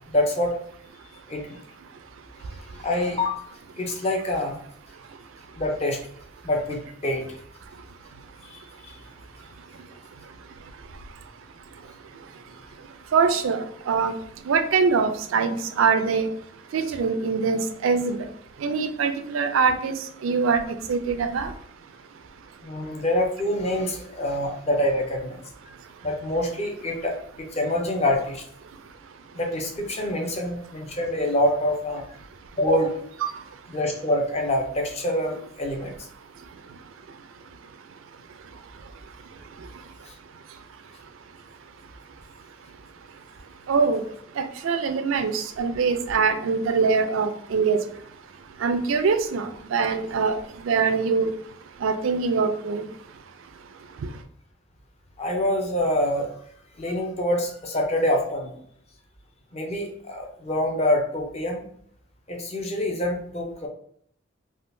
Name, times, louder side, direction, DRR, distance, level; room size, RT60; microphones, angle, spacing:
voice 1, 0.1-0.6 1.3-1.6 2.5-3.5 3.8-4.6 5.5-6.0 6.4-7.3 8.4-9.0 22.6-25.4 26.0-28.4 29.3-32.0 32.6-33.0 33.7-35.9 40.1-40.2 55.2-56.3 56.8-58.6 59.5-61.6 62.3-63.7, left 1 dB, 30° left, 0.6 m, -26 dB
voice 2, 13.1-14.1 14.5-16.3 16.7-18.2 18.6-19.9 20.2-20.6 20.9-21.5 33.2-33.3 43.7-44.0 44.4-47.8 48.6-50.4 50.6-51.3 51.8-52.8, right 5 dB, 80° right, 0.4 m, -23 dB
3.6 x 2.4 x 2.6 m
head